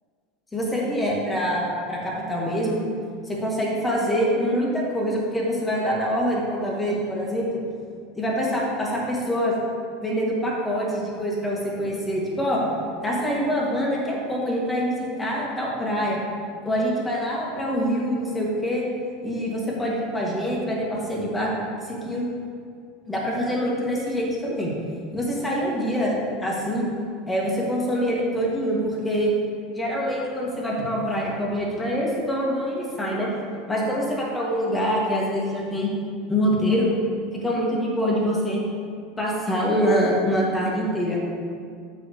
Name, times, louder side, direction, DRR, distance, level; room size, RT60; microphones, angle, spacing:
voice 1, 0.5-2.8 3.3-7.6 8.1-9.5 10.0-12.6 13.0-16.2 16.6-18.8 19.2-21.5 21.8-22.3 23.1-24.7 25.1-26.1 26.4-26.9 27.3-29.3 29.7-33.3 33.7-35.9 36.3-36.9 37.3-38.6 39.2-41.2, equal, 15° left, -4 dB, 2.6 m, -25 dB
14.0 x 6.3 x 3.4 m, 2.2 s
figure-of-eight pair, 75°, 0 cm